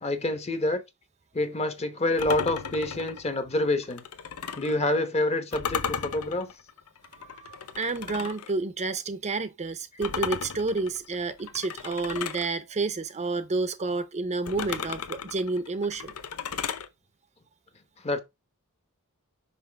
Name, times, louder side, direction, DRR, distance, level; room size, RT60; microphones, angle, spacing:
voice 1, 0.0-0.8 1.3-4.0 4.6-6.5 18.0-18.2, left 2 dB, 30° left, 0.9 m, -27 dB
sound 1, 2.2-4.8 5.5-8.5 10.0-12.5 14.5-16.9, left 6 dB, 85° left, 0.7 m, -35 dB
voice 2, 7.1-16.1, right 3 dB, 30° right, 0.6 m, -30 dB
5.8 x 5.5 x 3.4 m
head